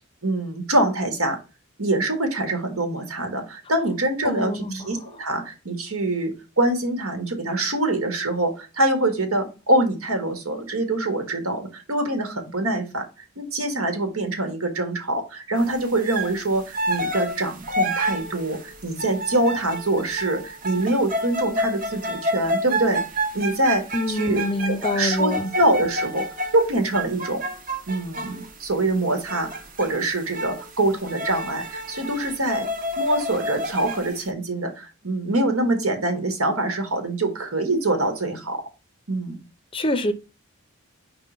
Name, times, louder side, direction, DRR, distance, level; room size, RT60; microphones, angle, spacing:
voice 1, 0.2-1.4 1.8-13.0 13.4-23.0 23.3-26.2 26.5-27.4 27.9-29.5 29.8-32.7 33.0-38.6 39.1-39.4, right 2 dB, 85° right, 1.7 m, -24 dB
voice 2, 4.2-4.9 23.9-25.5 39.7-40.1, left 1 dB, 25° left, 0.5 m, -25 dB
sound 1, 16.0-16.4 16.7-28.5 29.3-29.9 30.3-30.7 31.0-34.2, equal, 40° right, 0.9 m, -29 dB
4.9 x 3.8 x 5.0 m
head